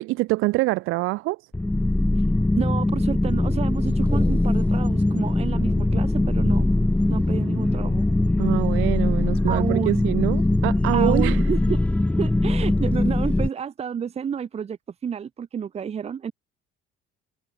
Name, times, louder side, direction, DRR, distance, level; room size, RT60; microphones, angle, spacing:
voice 1, 0.0-1.4 8.4-11.4, right 21 dB, 85° right, 0.6 m, -25 dB
sound 1, 1.5-13.5, left 2 dB, 5° left, 0.7 m, -21 dB
voice 2, 2.6-6.7 7.1-8.1 9.5-10.0 10.9-11.8 12.2-14.8 15.0-16.3, right 7 dB, 30° right, 1.3 m, -30 dB
cardioid pair, 155°, 21 cm